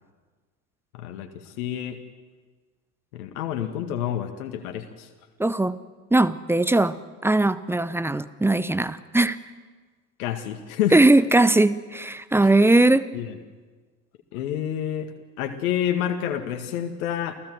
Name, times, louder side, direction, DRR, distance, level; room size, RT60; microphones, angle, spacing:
voice 1, 0.9-2.0 3.1-5.1 10.2-11.0 13.1-13.4 14.3-15.1 15.4-17.3, left 10 dB, 60° left, 6 dB, 1.9 m, -28 dB
voice 2, 5.4-5.8 6.1-7.0 7.2-9.4 10.9-13.1, right 2 dB, 5° right, 15 dB, 0.7 m, -19 dB
29.0 x 17.0 x 7.9 m, 1.4 s
figure-of-eight pair, 70°, 47 cm